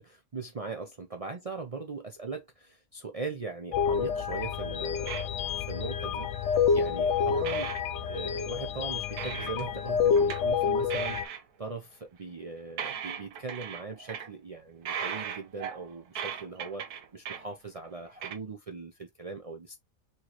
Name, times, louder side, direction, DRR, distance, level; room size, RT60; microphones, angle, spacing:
voice 1, 0.1-5.3 5.6-7.7 8.1-11.3 11.6-19.8, right 4 dB, 60° right, 0.3 m, -40 dB
sound 1, 3.7-11.2, left 6 dB, 65° left, 0.8 m, -28 dB
sound 2, 5.1-5.5 6.3-6.8 7.1-7.2 7.4-7.8 8.2-8.5 9.2-9.7 10.1-10.5 10.9-11.4 12.5-12.6 12.8-14.3 14.9-17.5 17.8-17.9 18.2-18.4, right 8 dB, 90° right, 1.3 m, -37 dB
4.4 x 3.0 x 2.9 m
omnidirectional pair, 1.6 m